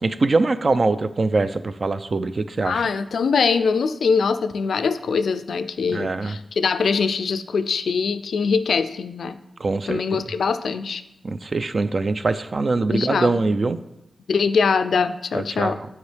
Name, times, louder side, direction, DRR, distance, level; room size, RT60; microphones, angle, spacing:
voice 1, 0.0-2.8 5.9-6.4 9.6-10.2 11.2-13.8 15.3-15.9, right 3 dB, 50° right, 13 dB, 0.3 m, -23 dB
voice 2, 2.6-9.4 9.9-11.0 12.9-13.4 14.3-15.8, left 5 dB, 90° left, 11 dB, 0.3 m, -22 dB
8.0 x 4.7 x 3.4 m, 0.86 s
wide cardioid pair, 85°, 0 cm